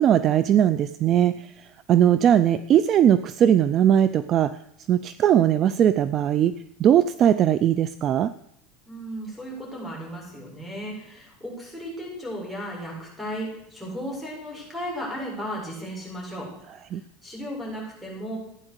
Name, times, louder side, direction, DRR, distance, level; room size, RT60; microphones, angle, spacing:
voice 1, 0.0-4.6 4.9-8.3 16.9-17.0, right 10 dB, 35° right, 14 dB, 0.5 m, -20 dB
voice 2, 8.9-16.7 17.2-18.4, equal, 5° right, -2 dB, 7.1 m, -35 dB
15.0 x 9.9 x 8.1 m, 0.74 s
supercardioid pair, 150°, 0 cm